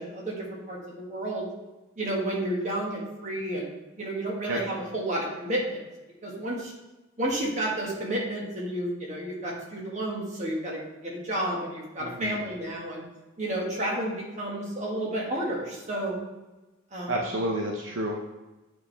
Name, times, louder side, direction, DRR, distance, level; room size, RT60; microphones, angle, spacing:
voice 1, 0.0-1.5 2.0-5.8 6.2-6.7 7.2-13.0 13.4-16.2 16.9-17.2, right 1 dB, 35° right, -3 dB, 1.7 m, -31 dB
voice 2, 12.0-12.4 17.1-18.2, right 1 dB, 65° right, 0 dB, 0.7 m, -30 dB
9.0 x 4.7 x 3.4 m, 1.1 s
head